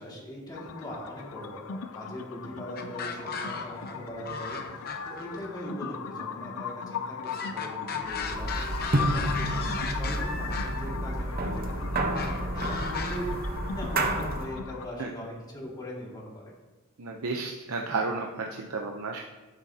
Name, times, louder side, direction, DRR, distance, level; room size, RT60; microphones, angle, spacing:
voice 1, 0.0-13.4 13.7-16.5, equal, 20° left, -4 dB, 2.2 m, -40 dB
sound 1, 0.5-14.9, left 6 dB, 70° left, 0.5 m, -39 dB
sound 2, 2.8-3.9 4.2-5.4 7.2-10.8 12.1-13.2, left 5 dB, 45° left, 0.8 m, -36 dB
sound 3, 8.1-14.6, right 1 dB, 45° right, 0.9 m, -30 dB
voice 2, 17.0-19.2, right 3 dB, 85° right, 1 dB, 0.7 m, -32 dB
12.5 x 7.3 x 2.8 m, 1.2 s
head